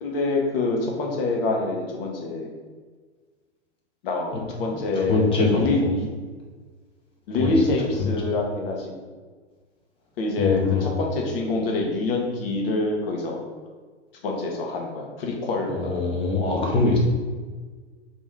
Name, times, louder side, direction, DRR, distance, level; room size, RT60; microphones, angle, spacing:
voice 1, 0.0-2.5 4.0-6.1 7.3-8.9 10.2-13.4 14.2-15.9, left 2 dB, 55° left, 0 dB, 0.9 m, -26 dB
voice 2, 4.7-5.8 7.3-7.5 8.0-8.1 10.4-10.8 15.7-17.0, left 3 dB, 15° left, -2 dB, 0.7 m, -23 dB
3.0 x 2.6 x 3.5 m, 1.5 s
figure-of-eight pair, 105°, 35 cm